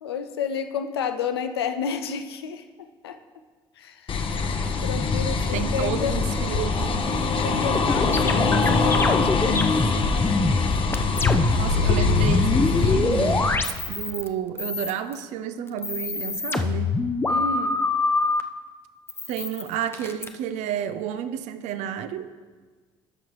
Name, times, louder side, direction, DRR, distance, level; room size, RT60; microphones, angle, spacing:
voice 1, 0.0-2.6 3.0-3.2 3.8-4.1 4.8-6.1 7.4-9.8 17.3-17.7, left 7 dB, 90° left, 8 dB, 0.5 m, -30 dB
sound 1, 4.1-13.6, left 4 dB, 40° left, 0.9 m, -23 dB
voice 2, 5.5-6.9 9.8-9.9 11.6-13.6 13.9-16.9 19.3-22.3, right 9 dB, 65° right, 11 dB, 0.5 m, -31 dB
sound 2, 7.7-11.7 11.9-14.3 14.6-15.2 15.7-18.4 19.1-20.3, left 3 dB, 20° left, 0.6 m, -25 dB
12.5 x 6.1 x 3.1 m, 1.4 s
hypercardioid pair, 55°, 13 cm